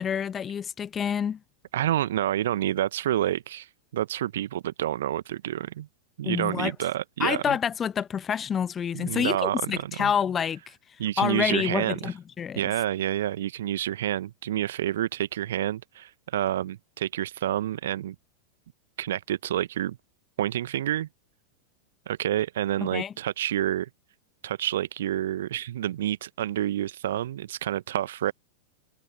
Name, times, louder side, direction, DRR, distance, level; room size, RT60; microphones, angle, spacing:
voice 1, 0.0-1.4 6.2-6.7 7.2-10.7 11.2-12.6 22.9-23.1, left 8 dB, 20° left, 1.0 m, -28 dB
voice 2, 1.7-3.7 3.9-5.9 6.2-7.6 8.9-10.1 11.0-12.1 12.5-18.1 19.0-20.0 20.4-21.1 22.1-23.9 24.4-28.3, right 12 dB, 60° right, 1.0 m, -28 dB
figure-of-eight pair, 90°, 0 cm